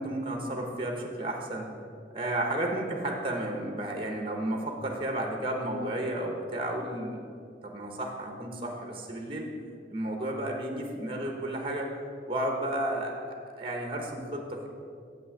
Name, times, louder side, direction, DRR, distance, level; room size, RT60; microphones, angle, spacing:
voice 1, 0.0-1.7 2.1-7.3 7.6-9.5 9.9-11.9 12.3-13.1 13.5-14.7, right 1 dB, 30° right, 2 dB, 0.9 m, -32 dB
7.5 x 6.2 x 6.3 m, 2.4 s
head